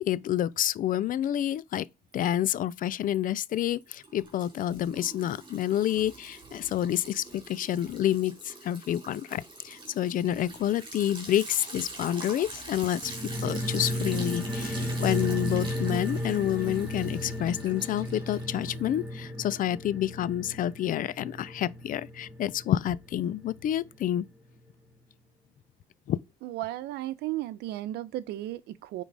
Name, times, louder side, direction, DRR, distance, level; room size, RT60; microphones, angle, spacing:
voice 1, 0.0-1.9 2.1-13.1 13.4-24.3 26.1-26.2, left 11 dB, 55° left, 0.5 m, -29 dB
Liquid, 2.1-2.7 3.0-19.2, right 2 dB, 30° right, 3.6 m, -45 dB
sound 1, 13.0-23.9 24.2-24.3, left 1 dB, 5° right, 2.1 m, -34 dB
voice 2, 26.4-29.0, right 15 dB, 80° right, 0.8 m, -34 dB
9.1 x 3.8 x 4.8 m
cardioid pair, 110°, 17 cm